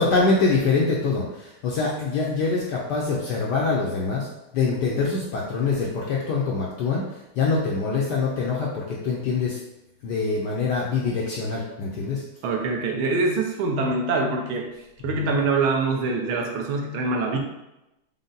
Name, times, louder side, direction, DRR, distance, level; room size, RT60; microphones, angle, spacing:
voice 1, 0.0-4.3 4.5-7.0 7.4-9.6 10.0-12.2 15.2-15.3, left 4 dB, 70° left, -3 dB, 1.0 m, -24 dB
voice 2, 12.4-14.7 15.0-17.4, right 3 dB, 75° right, 2 dB, 1.4 m, -24 dB
5.3 x 2.0 x 3.8 m, 0.91 s
omnidirectional pair, 2.3 m